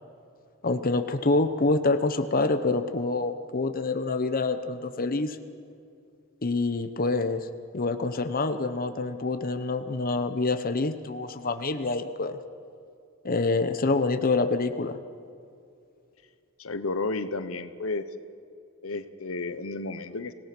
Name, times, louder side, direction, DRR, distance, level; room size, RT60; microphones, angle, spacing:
voice 1, 0.6-5.4 6.4-7.5 7.7-12.4 13.2-15.0, left 3 dB, 45° left, 9 dB, 0.9 m, -26 dB
voice 2, 16.6-18.0 18.8-20.3, left 3 dB, 75° left, 11 dB, 1.0 m, -32 dB
26.0 x 17.5 x 6.1 m, 2.4 s
head